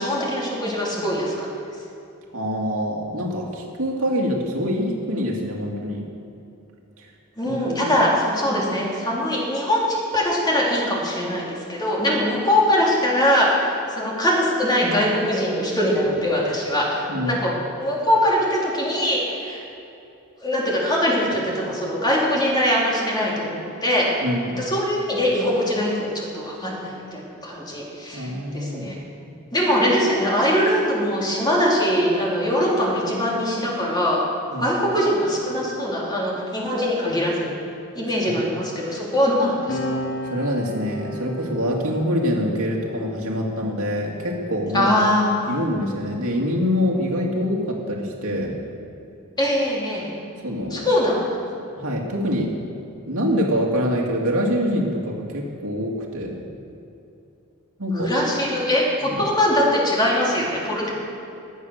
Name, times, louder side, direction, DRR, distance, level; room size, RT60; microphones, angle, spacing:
voice 1, 0.0-1.5 7.4-19.6 20.4-24.1 24.6-28.9 29.5-34.2 34.6-37.5 37.9-39.8 44.7-45.3 49.4-50.0 50.7-51.2 57.9-60.9, equal, 20° left, -4 dB, 3.5 m, -22 dB
voice 2, 2.3-6.0 7.0-7.1 7.4-8.0 17.1-17.4 24.2-24.6 28.1-29.3 34.5-34.7 38.2-38.4 40.3-44.9 45.5-48.5 50.4-50.9 51.8-52.7 53.1-56.4 57.8-58.1 59.1-59.2, equal, 75° right, -1 dB, 2.5 m, -25 dB
sound 1, 39.7-46.6 47.6-49.4, left 1 dB, 75° left, 2.0 m, -37 dB
20.5 x 8.2 x 6.7 m, 2.7 s
head